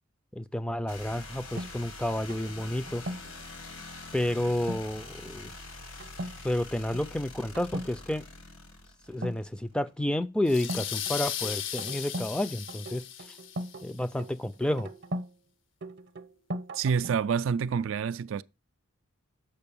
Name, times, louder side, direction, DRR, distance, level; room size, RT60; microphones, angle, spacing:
voice 1, 0.3-3.0 4.1-5.5 6.4-8.2 9.1-13.4 13.8-14.9, left 1 dB, 5° left, 0.3 m, -30 dB
sound 1, 0.9-9.6, left 3 dB, 85° left, 1.8 m, -45 dB
sound 2, 1.6-3.4 4.6-4.9 5.3-5.6 6.0-6.4 6.7-7.1 7.5-7.9 9.1-9.9 10.7-12.4 12.7-15.3 15.8-17.3, right 1 dB, 55° right, 0.7 m, -39 dB
sound 3, 10.5-13.9, left 10 dB, 65° left, 0.6 m, -36 dB
voice 2, 16.7-18.4, right 6 dB, 70° right, 0.3 m, -27 dB
6.7 x 5.2 x 6.9 m
head